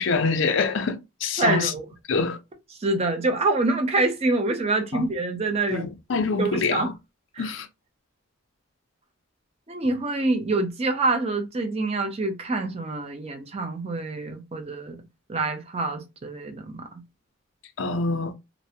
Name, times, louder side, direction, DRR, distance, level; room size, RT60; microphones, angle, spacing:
voice 1, 0.0-1.7 2.1-2.4 4.9-5.1 5.7-6.9 7.4-7.7 17.8-18.3, left 4 dB, 60° left, 0.4 m, -25 dB
voice 2, 1.4-1.8 2.8-5.9 6.4-6.9 7.3-7.5 9.7-15.0 15.3-16.8, right 2 dB, 30° right, 0.4 m, -26 dB
2.5 x 2.0 x 2.6 m
head